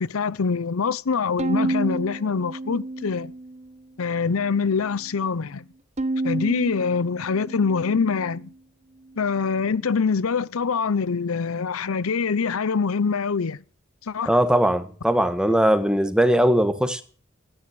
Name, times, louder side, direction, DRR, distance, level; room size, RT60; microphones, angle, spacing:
voice 1, 0.0-3.3 4.0-5.6 6.2-8.5 9.2-13.6 14.0-14.3, left 5 dB, 85° left, 0.6 m, -24 dB
Bowed string instrument, 1.4-3.8 4.2-5.0 6.0-8.5, right 2 dB, 35° right, 1.0 m, -30 dB
voice 2, 14.3-17.0, equal, 5° right, 1.3 m, -20 dB
16.5 x 9.9 x 7.7 m
head